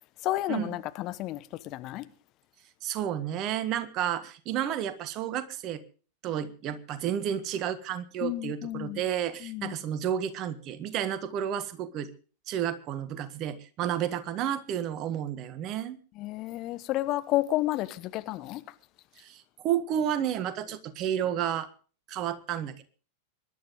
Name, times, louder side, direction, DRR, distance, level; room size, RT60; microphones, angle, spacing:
voice 1, 0.2-2.1 8.2-9.0 9.4-9.7 16.2-18.6, left 16 dB, 40° left, 1.2 m, -31 dB
voice 2, 2.8-5.8 6.2-12.1 12.5-16.0 19.2-21.7 22.1-22.7, right 10 dB, 35° right, 1.6 m, -31 dB
24.5 x 11.5 x 3.8 m
figure-of-eight pair, 90°, 0 cm